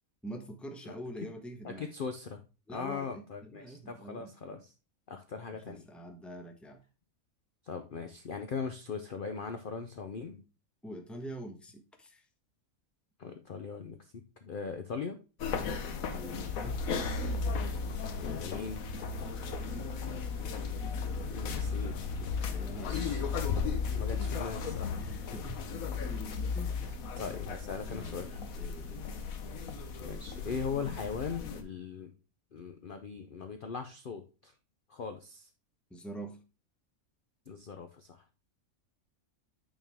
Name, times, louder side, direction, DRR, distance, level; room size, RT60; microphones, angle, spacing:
voice 1, 0.2-1.9 2.7-4.3 5.7-6.8 10.8-12.3 16.0-16.9 20.2-20.9 21.6-21.9 22.2-23.1 24.9-25.7 26.5-27.0 27.9-29.2 35.9-36.4, right 1 dB, ahead, 5 dB, 0.8 m, -45 dB
voice 2, 1.6-2.4 2.7-4.7 5.1-5.9 7.6-10.4 13.2-15.2 18.2-18.9 19.2-19.3 21.3-22.0 22.7-23.2 23.9-24.9 27.1-28.4 30.0-32.1 32.5-34.5 34.9-35.5 37.5-38.2, left 5 dB, 50° left, 7 dB, 0.7 m, -40 dB
sound 1, 15.4-31.6, left 5 dB, 75° left, 1.3 m, -35 dB
9.0 x 4.4 x 3.4 m, 0.31 s
omnidirectional pair, 1.5 m